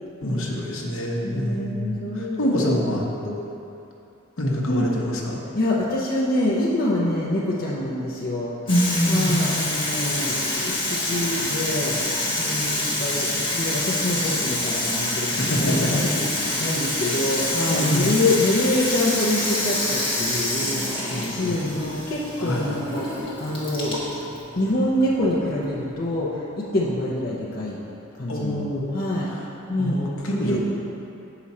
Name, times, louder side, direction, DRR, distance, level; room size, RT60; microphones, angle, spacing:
voice 1, 0.2-3.4 4.4-5.4 8.7-9.3 15.4-16.2 17.1-17.3 17.7-18.1 21.1-21.6 22.4-22.7 28.3-28.9 29.3-29.4 29.8-30.6, equal, 70° left, -2 dB, 0.9 m, -25 dB
voice 2, 1.2-3.0 4.7-4.9 5.5-8.5 9.1-11.9 12.4-20.8 21.3-24.2 24.6-27.8 28.2-28.7 28.9-29.3 29.7-30.1 30.4-30.6, left 1 dB, 45° left, -5 dB, 0.6 m, -26 dB
Water tap faucet / Sink (filling or washing), 8.7-26.2, left 1 dB, 25° left, 1.2 m, -27 dB
7.1 x 4.9 x 4.2 m, 2.8 s
head